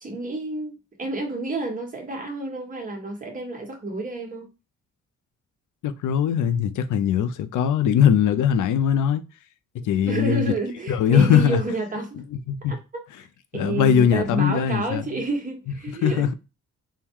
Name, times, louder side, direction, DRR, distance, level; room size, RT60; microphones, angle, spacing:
voice 1, 0.0-4.4 10.0-12.2 12.7-12.8 13.5-16.3, right 2 dB, 25° right, 1.1 m, -29 dB
voice 2, 5.8-9.2 9.8-10.5 10.9-11.6 12.3-12.8 13.5-15.0 16.0-16.3, left 8 dB, 85° left, 0.5 m, -20 dB
3.7 x 2.2 x 4.4 m
wide cardioid pair, 130°, 30 cm